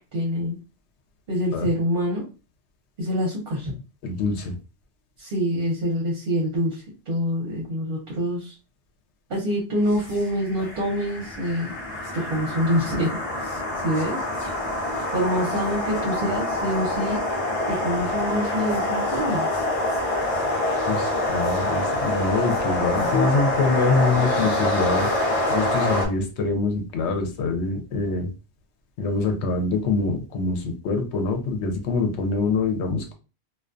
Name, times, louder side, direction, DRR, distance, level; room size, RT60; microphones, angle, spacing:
voice 1, 0.1-0.6 1.3-2.2 3.0-3.7 5.2-8.6 9.3-11.7 12.1-13.1 13.8-14.2 15.1-17.2 17.7-19.5, equal, 55° right, -2 dB, 0.9 m, -26 dB
voice 2, 4.0-4.6 20.9-25.1 25.5-28.3 29.0-33.1, left 3 dB, 80° left, 5 dB, 0.9 m, -24 dB
sound 1, 9.9-26.1, left 1 dB, 40° left, 0.7 m, -26 dB
2.3 x 2.2 x 2.4 m, 0.32 s
omnidirectional pair, 1.1 m